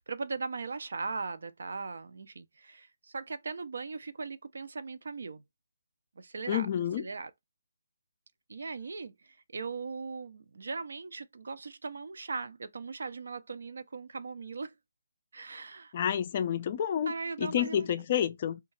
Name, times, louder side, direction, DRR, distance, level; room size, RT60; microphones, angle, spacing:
voice 1, 0.0-5.4 6.2-6.7 7.0-7.3 8.5-14.7 15.3-15.9 17.1-17.9, right 4 dB, 70° right, 0.4 m, -39 dB
voice 2, 6.5-7.0 15.9-17.1 17.4-18.6, left 9 dB, 35° left, 0.3 m, -29 dB
2.7 x 2.2 x 3.0 m
hypercardioid pair, 165°, 0 cm